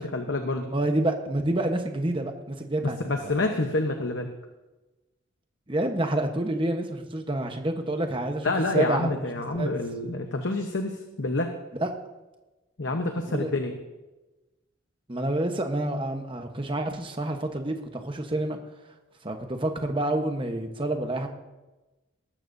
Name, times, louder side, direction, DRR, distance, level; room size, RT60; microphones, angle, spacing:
voice 1, 0.0-0.7 2.8-4.3 8.4-11.5 12.8-13.8, left 2 dB, 60° left, 5 dB, 0.9 m, -28 dB
voice 2, 0.7-3.0 3.2-3.5 5.7-9.2 9.5-9.7 11.7-11.9 13.3-13.5 15.1-18.6 19.2-21.3, right 1 dB, 25° right, 5 dB, 1.0 m, -28 dB
18.5 x 13.5 x 2.7 m, 1.1 s
head